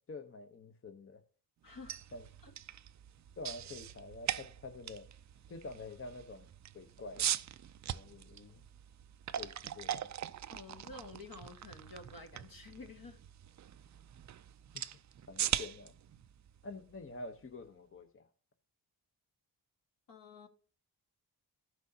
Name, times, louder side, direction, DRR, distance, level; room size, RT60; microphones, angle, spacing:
voice 1, 0.1-1.2 2.1-2.2 3.4-5.1 5.5-6.5 6.7-7.3 7.9-8.6 9.4-10.1 14.7-14.8 15.3-15.9 16.6-18.3, left 3 dB, 30° left, 0.9 m, -47 dB
voice 2, 1.6-2.0 2.4-2.5 10.5-13.2 20.1-20.5, left 3 dB, 55° left, 1.8 m, -50 dB
sound 1, 1.7-17.6, right 10 dB, 45° right, 0.5 m, -42 dB
15.0 x 6.1 x 2.8 m
supercardioid pair, 50°, 40 cm